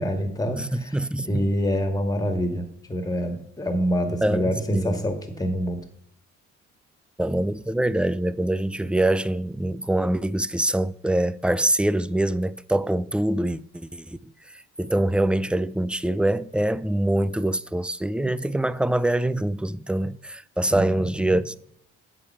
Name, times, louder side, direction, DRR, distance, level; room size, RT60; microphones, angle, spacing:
voice 1, 0.0-1.0 1.3-5.9 20.7-21.4, equal, 10° left, 2.2 m, -26 dB
voice 2, 0.5-1.4 4.2-5.0 7.2-14.2 14.8-21.6, right 1 dB, 5° right, 0.4 m, -24 dB
9.9 x 7.4 x 5.7 m
cardioid pair, 90°, 30 cm